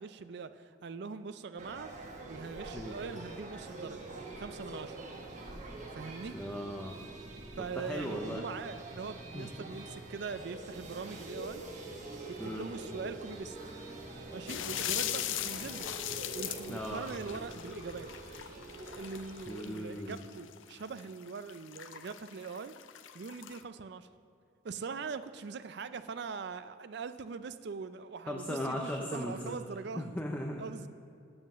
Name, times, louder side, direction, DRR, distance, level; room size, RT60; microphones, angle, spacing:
voice 1, 0.0-1.9 2.3-4.1 4.4-5.0 5.9-6.4 7.6-11.6 12.3-13.6 14.3-15.9 16.4-18.1 19.0-22.8 23.1-24.1 24.6-30.1 30.6-30.9, right 5 dB, 55° right, 12 dB, 0.4 m, -42 dB
sound 1, 1.6-19.9, right 2 dB, 35° right, 1.1 m, -45 dB
voice 2, 6.3-7.0 7.6-8.4 9.3-9.5 12.4-12.7 16.7-17.0 19.5-20.2 28.3-29.5 29.9-30.7, equal, 10° left, 0 dB, 0.5 m, -38 dB
sound 2, 14.5-23.6, left 12 dB, 70° left, 0.4 m, -40 dB
7.8 x 7.4 x 7.2 m, 2.5 s
head